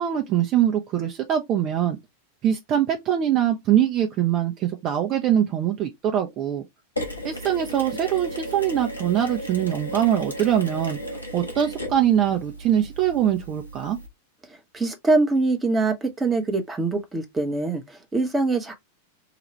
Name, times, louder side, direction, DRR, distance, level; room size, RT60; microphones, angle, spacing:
voice 1, 0.0-2.0 2.4-6.6 7.2-11.0 11.3-14.0, right 10 dB, 35° right, 0.7 m, -23 dB
Mechanisms, 7.0-14.1, equal, 85° left, 1.2 m, -35 dB
voice 2, 14.7-18.7, right 3 dB, 10° right, 0.9 m, -23 dB
4.8 x 2.4 x 3.0 m
figure-of-eight pair, 90°, 0 cm